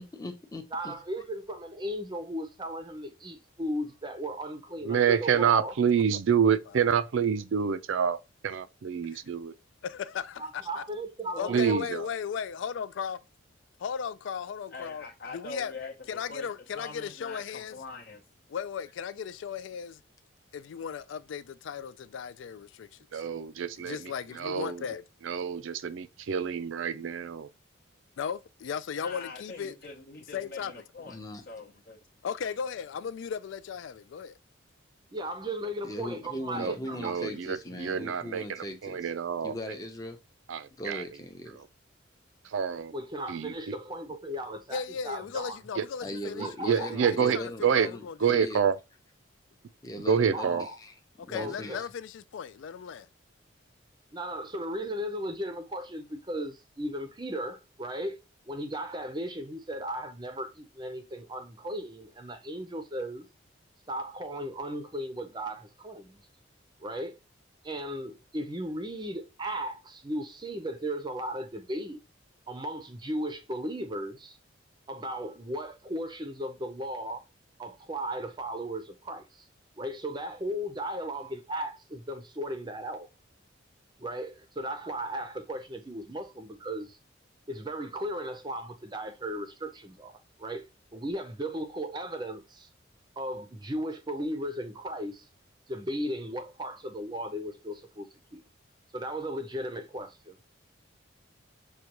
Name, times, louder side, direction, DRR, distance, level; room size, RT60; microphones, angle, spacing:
voice 1, 0.0-0.9 31.0-31.4 35.8-39.1 39.4-40.2 40.8-41.6 46.0-48.6 49.8-50.9 51.3-51.9, left 1 dB, 20° left, 0.6 m, -39 dB
voice 2, 0.7-5.7 10.4-11.9 35.1-37.2 42.9-45.6 46.4-47.1 50.3-50.8 51.3-51.8 54.1-58.2 58.5-63.3 63.9-66.2 66.8-67.2 67.6-72.0 72.5-74.4 74.9-77.2 77.6-79.5 79.8-83.1 84.0-87.0 87.5-90.7 90.9-92.7 93.2-95.3 95.7-98.4 98.9-100.4, right 1 dB, 20° right, 0.5 m, -36 dB
voice 3, 4.8-9.5 11.5-12.0 23.1-24.1 24.4-24.8 25.2-27.5 36.6-39.5 40.5-41.0 42.5-42.9 43.3-43.5 45.8-45.9 46.7-47.9 48.2-48.8 50.1-50.7, right 7 dB, 75° right, 0.4 m, -27 dB
voice 4, 9.8-10.8 11.3-13.2 13.8-15.1 15.3-15.7 16.1-17.8 18.5-20.0 20.5-23.0 23.8-25.0 28.2-29.7 30.3-30.7 32.2-34.4 44.7-48.5 51.2-53.1, left 7 dB, 70° left, 0.3 m, -36 dB
voice 5, 14.7-16.5 16.7-18.2 29.0-32.0, left 3 dB, 55° left, 0.7 m, -43 dB
6.4 x 2.3 x 2.9 m
head